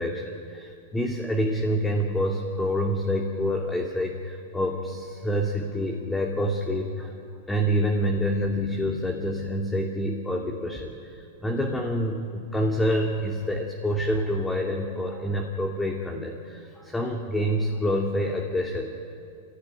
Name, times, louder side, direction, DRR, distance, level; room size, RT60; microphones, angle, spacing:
voice 1, 0.0-7.1 7.5-18.9, equal, 10° left, 0 dB, 2.8 m, -27 dB
26.0 x 16.5 x 9.7 m, 2.4 s
hypercardioid pair, 110°, 0 cm